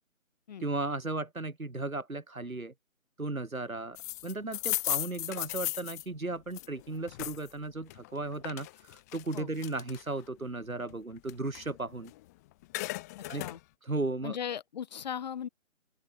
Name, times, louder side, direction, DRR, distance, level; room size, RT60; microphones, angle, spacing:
voice 1, 0.6-2.7 3.2-4.0 4.2-12.1 13.3-13.4 13.8-14.4, right 2 dB, 90° right, 5.4 m, -35 dB
sound 1, 4.0-7.5 7.9-10.3 10.7-12.2 12.5-13.6, left 19 dB, 10° left, 1.6 m, -36 dB
voice 2, 14.2-15.5, left 8 dB, 30° left, 4.0 m, -37 dB
open air
figure-of-eight pair, 155°, 40 cm